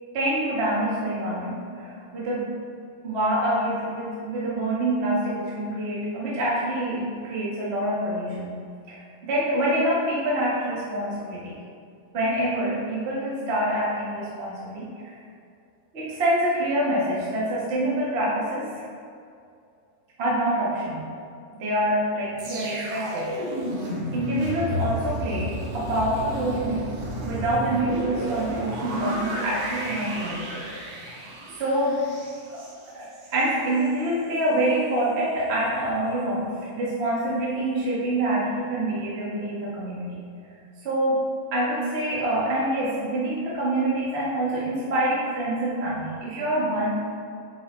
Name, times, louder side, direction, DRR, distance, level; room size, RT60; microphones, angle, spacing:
voice 1, 0.1-2.5 3.0-11.5 12.1-15.2 15.9-18.8 20.2-21.1 21.6-23.4 23.8-26.9 27.2-30.6 31.0-31.2 31.5-32.1 32.9-40.2 40.8-41.2 41.5-46.9, right 1 dB, 70° right, -7 dB, 0.6 m, -26 dB
sound 1, 22.4-33.5 33.8-34.0, equal, 90° right, 3.0 m, -32 dB
8.3 x 5.0 x 3.8 m, 2.3 s
omnidirectional pair, 4.1 m